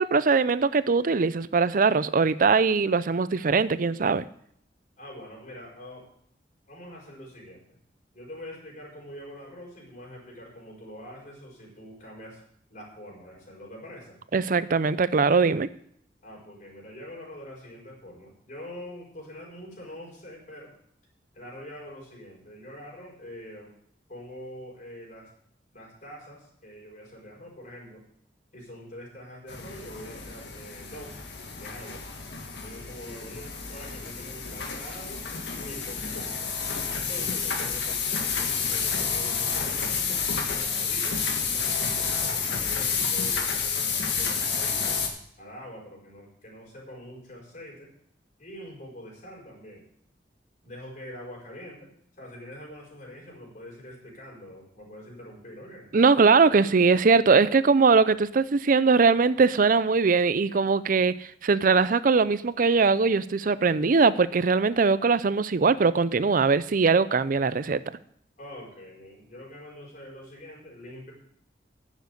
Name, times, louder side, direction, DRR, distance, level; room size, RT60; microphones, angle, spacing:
voice 1, 0.0-4.3 14.3-15.7 55.9-67.8, right 4 dB, 50° right, 16 dB, 0.5 m, -21 dB
voice 2, 5.0-6.1 6.7-7.7 8.1-12.4 12.7-14.2 16.2-20.7 21.3-23.7 24.1-25.3 25.7-28.0 28.5-31.2 31.5-32.0 32.6-35.2 35.6-36.5 37.0-41.2 41.5-45.0 45.4-47.9 48.4-49.9 50.6-51.9 52.2-55.9 68.4-71.1, equal, 45° left, -2 dB, 5.2 m, -44 dB
sound 1, 29.5-45.1, left 5 dB, 80° left, 1.9 m, -30 dB
10.5 x 7.3 x 8.3 m, 0.68 s
head